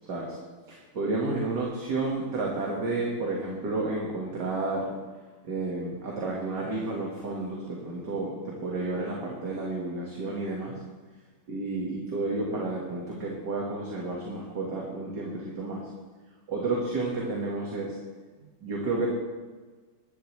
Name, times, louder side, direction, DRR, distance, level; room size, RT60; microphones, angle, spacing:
voice 1, 0.7-4.9 5.4-10.8 11.5-15.8 16.5-18.0 18.6-19.1, right 2 dB, 60° right, -3 dB, 2.5 m, -31 dB
20.0 x 11.5 x 3.3 m, 1.4 s
omnidirectional pair, 2.1 m